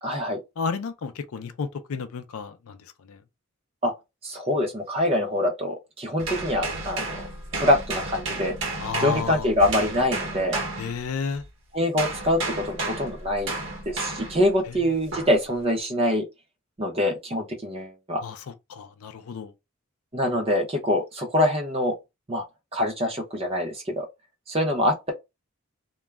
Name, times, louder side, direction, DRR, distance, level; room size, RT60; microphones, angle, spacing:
voice 1, 0.0-0.4 3.8-3.9 4.2-7.3 7.5-8.5 9.0-10.6 11.7-13.5 13.9-16.2 16.8-18.2 20.1-21.9 22.3-22.4 22.7-24.1 24.5-25.1, left 1 dB, 25° right, 0.6 m, -24 dB
voice 2, 0.6-2.8 3.1-3.2 8.8-9.5 10.8-11.4 14.7-14.8 18.2-18.4 18.7-19.5, left 5 dB, 80° left, 0.4 m, -32 dB
sound 1, 6.2-11.5 12.0-14.5 15.1-15.4, right 2 dB, 55° right, 0.9 m, -32 dB
2.3 x 2.0 x 3.3 m
head